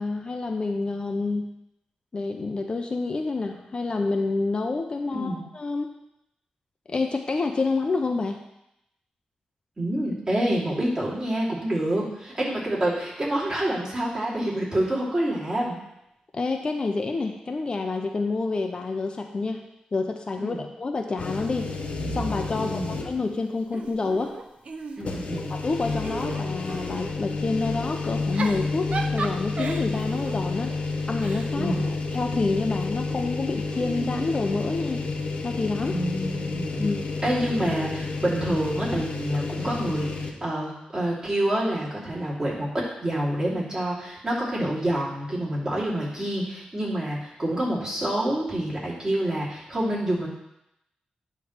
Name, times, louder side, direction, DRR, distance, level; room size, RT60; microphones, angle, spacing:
voice 1, 0.0-1.5 2.1-5.9 6.9-8.4 16.3-19.6 19.9-21.7 22.1-24.3 25.5-31.7 32.1-35.0 35.4-36.0 36.8-37.0, left 3 dB, 35° left, 4 dB, 0.6 m, -28 dB
voice 2, 5.1-5.4 9.8-15.8 20.4-20.6 22.5-23.0 25.0-25.5 31.5-31.9 35.9-36.8 37.2-50.3, right 1 dB, 30° right, -6 dB, 2.9 m, -27 dB
sound 1, 21.2-23.3 23.8-23.9 25.0-40.3, left 3 dB, 55° left, 1.0 m, -30 dB
Giggle / Chuckle chortle, 23.7-25.3 25.8-27.2 28.1-32.6 33.7-35.1, right 4 dB, 50° right, 0.7 m, -37 dB
9.6 x 3.2 x 6.5 m, 0.84 s
wide cardioid pair, 115°, 3 cm